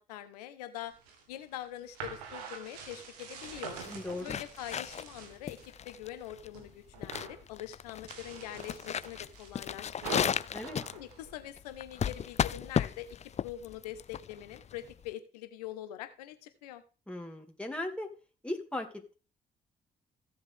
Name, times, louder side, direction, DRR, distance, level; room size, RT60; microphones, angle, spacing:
voice 1, 0.1-0.9 1.3-3.8 4.2-5.6 5.8-10.3 10.9-13.2 13.4-16.8, left 12 dB, 85° left, 10 dB, 1.1 m, -44 dB
sound 1, 0.8-5.7 6.1-6.7 6.9-7.4 7.9-11.8, right 6 dB, 85° right, 1.5 m, -45 dB
sound 2, 3.4-15.1, left 8 dB, 35° left, 0.4 m, -35 dB
voice 2, 3.9-4.4 10.5-10.8 17.1-18.1 18.4-19.2, left 1 dB, 5° left, 2 dB, 2.4 m, -38 dB
16.0 x 7.3 x 3.6 m, 0.34 s
hypercardioid pair, 40°, 20 cm